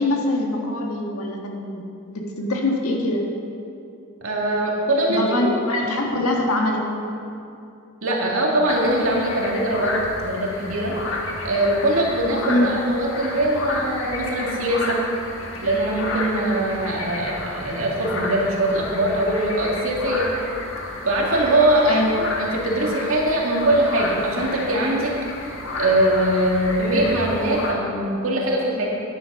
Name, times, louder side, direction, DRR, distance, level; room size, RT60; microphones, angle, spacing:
voice 1, 0.0-3.3 5.1-6.9 12.5-12.7 21.9-22.2, left 1 dB, 90° left, 1 dB, 1.6 m, -23 dB
voice 2, 4.2-5.6 8.0-9.9 10.2-10.9 11.4-15.0 15.6-20.2 21.0-25.1 25.5-28.9, right 1 dB, 70° right, -3 dB, 2.2 m, -22 dB
sound 1, 8.7-27.7, left 2 dB, 65° left, 1.5 m, -31 dB
10.0 x 9.6 x 5.5 m, 2.7 s
head